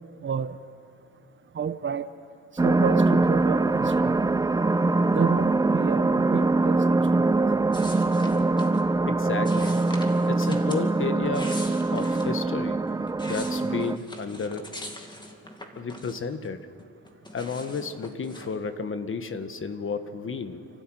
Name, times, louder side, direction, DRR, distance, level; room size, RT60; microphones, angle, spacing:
voice 1, 0.2-0.6 1.5-2.1 2.6-4.2 5.1-7.3, right 6 dB, 40° right, 12 dB, 1.0 m, -30 dB
sound 1, 2.6-14.0, right 3 dB, 10° right, 0.5 m, -23 dB
sound 2, 7.7-8.8 9.5-10.8 11.2-12.3 12.9-16.5 16.8-18.5, left 1 dB, 15° left, 2.5 m, -42 dB
voice 2, 9.0-9.8 10.3-11.6 11.9-12.8 13.2-14.8 15.8-16.7 17.3-20.7, left 5 dB, 45° left, 9 dB, 1.6 m, -32 dB
29.5 x 12.5 x 9.2 m, 2.3 s
cardioid pair, 90°, 30 cm